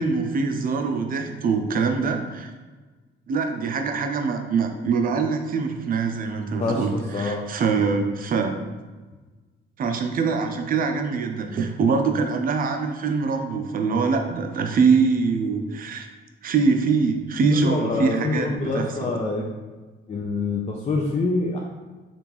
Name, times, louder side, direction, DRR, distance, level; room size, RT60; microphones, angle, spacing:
voice 1, 0.0-2.5 3.3-8.5 9.8-16.1 16.4-19.1, right 5 dB, 45° right, 5 dB, 0.5 m, -23 dB
voice 2, 6.6-7.4 17.5-19.5 20.1-21.6, left 3 dB, 35° left, -1 dB, 0.4 m, -26 dB
3.5 x 2.5 x 2.9 m, 1.3 s
cardioid pair, 90°, 20 cm